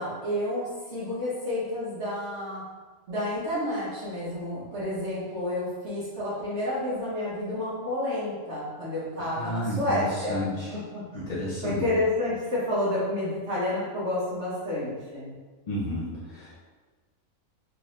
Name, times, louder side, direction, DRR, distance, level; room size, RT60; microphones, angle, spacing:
voice 1, 0.0-2.6 3.1-10.8 11.1-15.4, left 1 dB, 55° right, -8 dB, 1.1 m, -30 dB
voice 2, 9.2-10.7 11.1-11.8 15.7-16.6, left 1 dB, 55° left, -9 dB, 0.4 m, -32 dB
3.7 x 2.6 x 3.0 m, 1.4 s
omnidirectional pair, 1.6 m